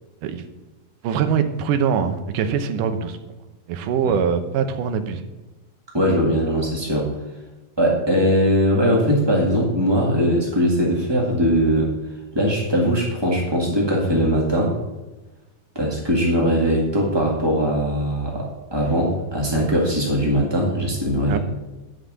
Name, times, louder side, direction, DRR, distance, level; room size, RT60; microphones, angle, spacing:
voice 1, 1.0-3.2 3.7-5.2 21.3-21.4, right 7 dB, 75° right, 8 dB, 2.4 m, -22 dB
voice 2, 5.9-7.1 7.8-11.9 12.3-14.8 15.7-21.4, equal, 30° right, -2 dB, 0.5 m, -20 dB
10.0 x 5.7 x 8.0 m, 1.1 s
omnidirectional pair, 4.0 m